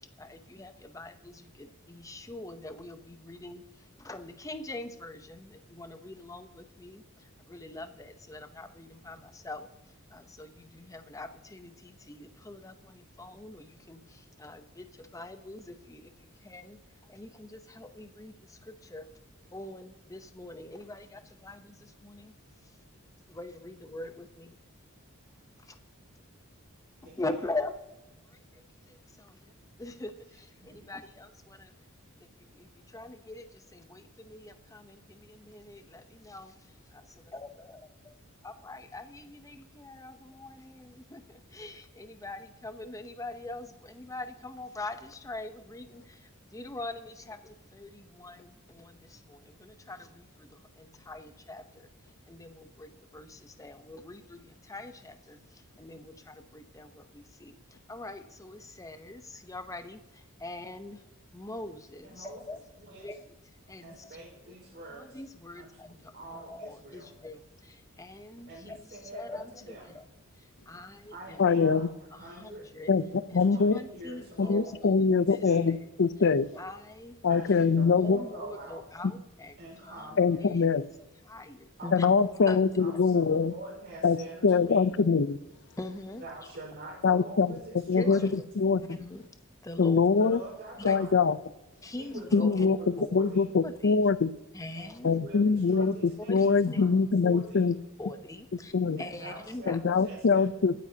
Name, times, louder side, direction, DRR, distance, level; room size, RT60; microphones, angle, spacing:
voice 1, 0.2-9.7 10.1-16.8 17.1-19.1 19.5-22.3 23.3-24.6 25.7-25.8 27.0-27.8 28.3-28.6 28.9-31.7 32.2-36.5 36.9-38.1 38.4-51.9 52.3-57.5 57.9-61.0 61.3-63.3 63.7-64.2 64.5-64.6 64.9-70.1 70.4-71.5 72.1-75.8 76.5-77.2 77.6-80.9 81.2-82.1 82.5-82.6 85.8-86.2 88.0-88.4 88.9-89.2 89.6-90.0 90.9-91.0 91.8-92.7 93.0-93.1 93.6-94.0 94.5-95.1 96.3-96.8 97.6-98.7 99.0-99.8, left 2 dB, 15° left, 8 dB, 0.7 m, -43 dB
voice 2, 30.6-30.9 62.0-63.1 63.8-65.2 65.6-67.1 68.5-69.9 71.1-71.9 72.2-72.7 73.2-74.7 75.1-75.7 77.3-78.8 79.6-80.5 81.8-82.0 82.8-84.9 86.2-88.3 90.2-91.2 91.8-93.5 94.7-97.0 97.2-97.6 99.0-100.5, right 2 dB, 50° right, -2 dB, 4.8 m, -45 dB
voice 3, 71.4-71.9 72.9-73.0 73.3-73.8 74.4-76.5 77.2-78.2 80.2-80.9 81.9-83.5 84.0-84.2 84.4-85.4 87.0-87.5 87.9-88.8 89.8-90.4 90.8-91.4 92.3-92.8 93.1-94.3 95.0-96.0 96.3-97.8 98.7-99.0 99.7-100.7, left 5 dB, 60° left, 15 dB, 0.5 m, -24 dB
24.0 x 9.4 x 2.8 m, 0.99 s
head